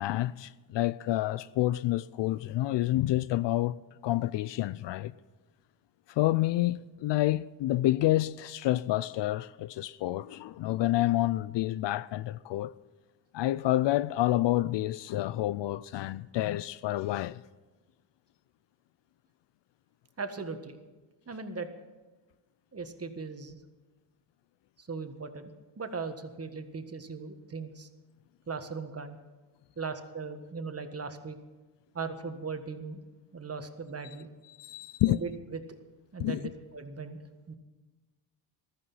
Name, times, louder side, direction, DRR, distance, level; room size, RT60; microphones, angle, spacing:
voice 1, 0.0-3.7 4.0-5.1 6.2-12.7 13.3-17.4 34.6-35.2 36.2-36.4, left 15 dB, 60° left, 0.5 m, -28 dB
voice 2, 20.2-20.8 21.3-21.7 22.7-23.6 24.8-27.9 28.5-29.2 29.8-31.4 31.9-33.0 33.3-34.3 35.1-35.6 36.1-37.5, right 4 dB, 30° right, 1.6 m, -38 dB
15.5 x 13.0 x 5.6 m
supercardioid pair, 70°, 49 cm